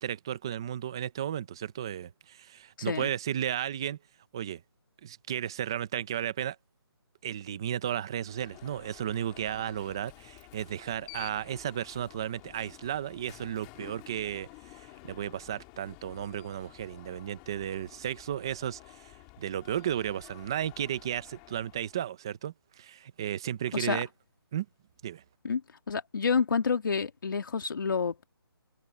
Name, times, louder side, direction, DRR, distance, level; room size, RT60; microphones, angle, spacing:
voice 1, 0.0-4.0 4.3-4.6 5.0-6.6 7.2-19.1 19.4-24.1 24.5-24.7 25.0-25.2, right 10 dB, 10° right, 0.5 m, -34 dB
voice 2, 2.8-3.1 23.7-24.0 25.4-25.6 25.9-28.2, left 5 dB, 55° left, 2.5 m, -29 dB
Alarm, 8.1-22.1, left 21 dB, 10° left, 1.7 m, -52 dB
hypercardioid pair, 175°, 13 cm